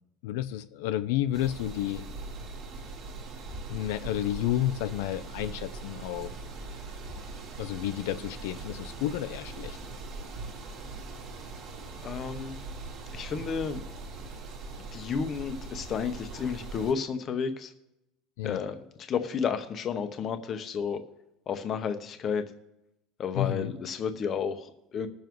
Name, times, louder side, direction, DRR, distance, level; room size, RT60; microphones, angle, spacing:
voice 1, 0.2-2.0 3.7-6.3 7.6-9.8 18.4-18.6 23.3-23.7, left 13 dB, 80° left, 11 dB, 0.4 m, -31 dB
sound 1, 1.3-16.9, right 3 dB, 45° right, 1.7 m, -41 dB
voice 2, 12.0-12.6 13.1-13.8 14.9-17.7 18.4-21.0 21.5-22.5 23.2-25.1, left 6 dB, 30° left, 8 dB, 0.8 m, -32 dB
21.0 x 7.1 x 3.1 m, 0.87 s
cardioid pair, 170°, 0 cm